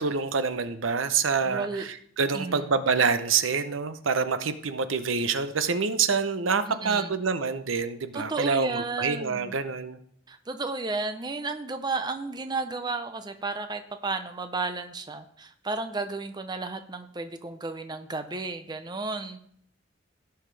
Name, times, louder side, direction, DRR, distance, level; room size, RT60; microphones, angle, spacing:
voice 1, 0.0-10.0, right 5 dB, 85° right, 11 dB, 0.7 m, -26 dB
voice 2, 1.4-1.9 2.3-2.7 6.7-7.1 8.1-9.5 10.3-19.4, right 3 dB, 20° right, 8 dB, 0.6 m, -33 dB
16.5 x 5.7 x 3.3 m, 0.65 s
head